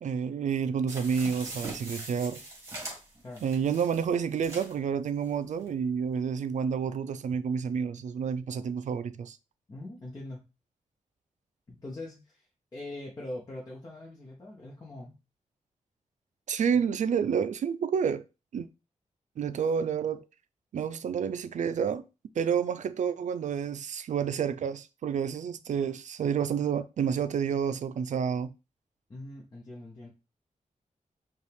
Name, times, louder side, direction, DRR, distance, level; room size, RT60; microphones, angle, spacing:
voice 1, 0.0-2.4 3.4-9.4 16.5-18.2 18.5-18.7 19.4-20.2 20.7-22.0 22.4-28.5, right 7 dB, 70° right, 0.4 m, -29 dB
sound 1, 0.9-4.8 5.3-5.4 5.6-5.7, right 2 dB, 20° right, 1.7 m, -42 dB
voice 2, 9.7-10.4 11.7-15.1 29.1-30.1, left 1 dB, 30° left, 1.0 m, -42 dB
5.3 x 2.4 x 3.4 m
wide cardioid pair, 130°, 13 cm